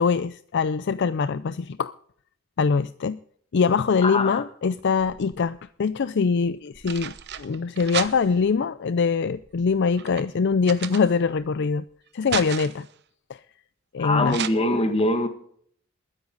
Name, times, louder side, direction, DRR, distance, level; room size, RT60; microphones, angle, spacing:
voice 1, 0.0-1.9 2.6-3.2 3.5-11.8 12.1-12.9 13.3-13.4 13.9-14.4, left 5 dB, 55° left, 0.4 m, -23 dB
voice 2, 4.0-4.4 14.0-15.3, left 1 dB, 30° left, 1.9 m, -23 dB
sound 1, 4.8-5.6 6.5-8.6 9.3-11.5 11.9-12.9 14.3-14.5, right 8 dB, 50° right, 0.9 m, -34 dB
21.0 x 10.0 x 3.9 m
head